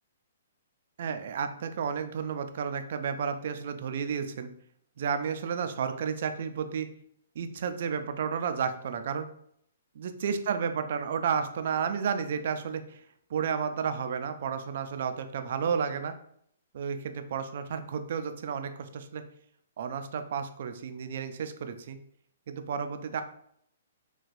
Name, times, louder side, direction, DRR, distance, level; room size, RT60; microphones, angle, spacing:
voice 1, 1.0-4.5 5.0-6.9 7.4-9.3 10.0-13.0 13.3-16.1 16.7-19.2 19.8-22.0 22.5-23.2, right 6 dB, 55° right, 8 dB, 0.3 m, -32 dB
4.0 x 2.2 x 2.5 m, 0.68 s
hypercardioid pair, 155°, 0 cm